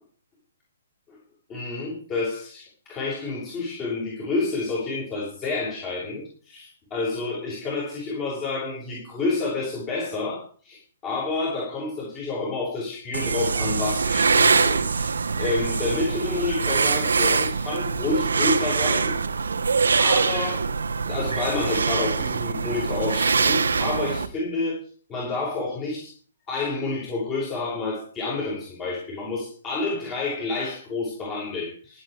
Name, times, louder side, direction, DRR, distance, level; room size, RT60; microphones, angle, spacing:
voice 1, 1.5-19.2 20.0-20.6 21.0-24.8 25.1-26.1 26.5-32.0, left 3 dB, 20° left, -4 dB, 6.4 m, -29 dB
sound 1, 13.1-24.3, right 5 dB, 65° right, 1.6 m, -23 dB
24.5 x 8.4 x 4.9 m, 0.42 s
figure-of-eight pair, 130°, 0 cm